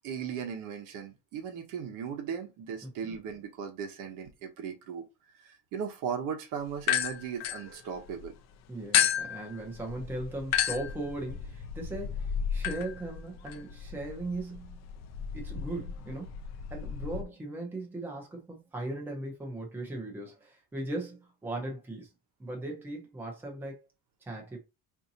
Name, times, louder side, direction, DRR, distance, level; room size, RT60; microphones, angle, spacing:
voice 1, 0.0-5.0 5.3-8.3, right 7 dB, 55° right, 1.0 m, -37 dB
voice 2, 2.8-3.1 8.7-14.8 15.3-16.3 16.7-22.1 22.4-23.9 24.2-24.6, right 2 dB, 5° right, 0.7 m, -38 dB
sound 1, 6.8-8.3 8.9-17.2, left 9 dB, 45° left, 0.5 m, -33 dB
5.0 x 2.8 x 2.8 m
cardioid pair, 180°, 38 cm